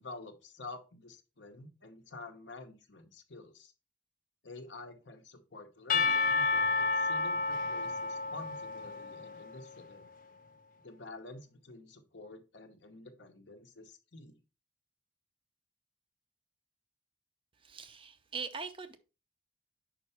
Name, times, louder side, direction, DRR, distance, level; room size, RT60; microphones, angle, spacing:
voice 1, 0.0-3.7 4.4-10.1 10.8-14.4, left 2 dB, 75° left, 1.1 m, -49 dB
Percussion / Church bell, 5.9-9.8, left 3 dB, 45° left, 0.4 m, -31 dB
voice 2, 17.6-19.0, right 5 dB, 30° right, 0.6 m, -41 dB
5.6 x 4.6 x 4.4 m
head